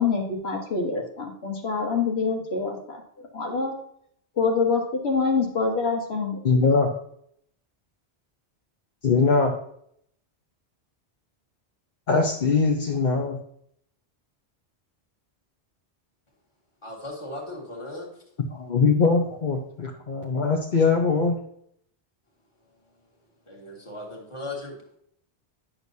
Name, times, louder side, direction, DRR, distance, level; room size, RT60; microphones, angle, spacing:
voice 1, 0.0-3.0 3.3-3.7 4.4-6.4, left 4 dB, 70° left, 1 dB, 1.4 m, -25 dB
voice 2, 6.4-6.9 9.0-9.5 12.1-13.4 18.5-21.4, left 4 dB, 50° left, 0 dB, 0.9 m, -22 dB
voice 3, 16.8-18.1 23.5-25.0, left 2 dB, 25° left, -1 dB, 1.8 m, -37 dB
10.0 x 6.3 x 2.7 m, 0.69 s
omnidirectional pair, 1.1 m